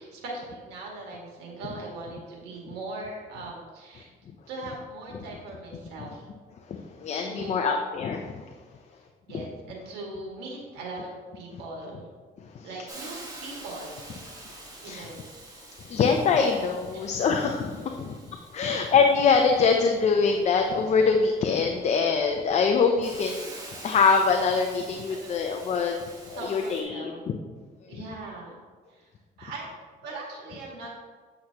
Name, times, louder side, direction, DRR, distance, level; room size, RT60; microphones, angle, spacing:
voice 1, 0.0-4.1 4.5-6.3 7.2-7.8 9.3-12.1 12.6-14.1 14.8-15.2 15.8-16.0 16.9-17.0 18.6-18.8 25.1-25.4 26.3-27.2 27.9-28.5 28.9-29.1 29.4-29.7 30.0-30.9, right 2 dB, 85° right, -2 dB, 1.9 m, -40 dB
voice 2, 7.0-8.3 12.5-12.7 14.8-15.1 15.9-23.5 23.8-27.1 27.9-28.0, left 5 dB, 45° left, 3 dB, 0.6 m, -24 dB
Hiss, 12.9-26.8, right 2 dB, 20° right, 1.6 m, -46 dB
8.4 x 5.9 x 2.9 m, 1.5 s
cardioid pair, 110°, 17 cm